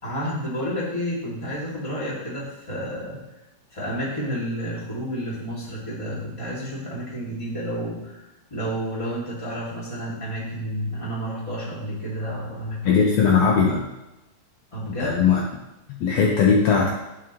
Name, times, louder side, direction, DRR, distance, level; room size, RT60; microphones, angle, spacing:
voice 1, 0.0-3.2 3.7-8.2 8.5-13.1 14.7-15.2, equal, 10° left, -7 dB, 2.0 m, -30 dB
voice 2, 12.9-13.9 15.0-15.4 15.9-16.9, left 6 dB, 70° left, -1 dB, 1.8 m, -19 dB
11.5 x 4.8 x 3.1 m, 0.96 s
omnidirectional pair, 3.3 m